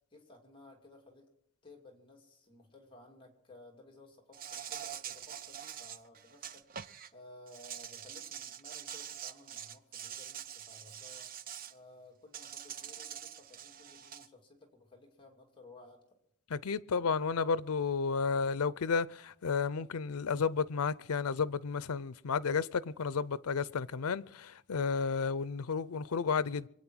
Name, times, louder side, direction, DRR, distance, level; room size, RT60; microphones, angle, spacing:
voice 1, 0.1-1.3 1.6-11.3 11.7-16.0, left 2 dB, 25° left, 2.3 m, -57 dB
Insect, 4.3-7.1 7.5-11.7 12.3-14.3, right 9 dB, 40° right, 0.5 m, -45 dB
voice 2, 16.5-26.7, left 5 dB, 80° left, 0.6 m, -32 dB
24.0 x 8.9 x 6.2 m
head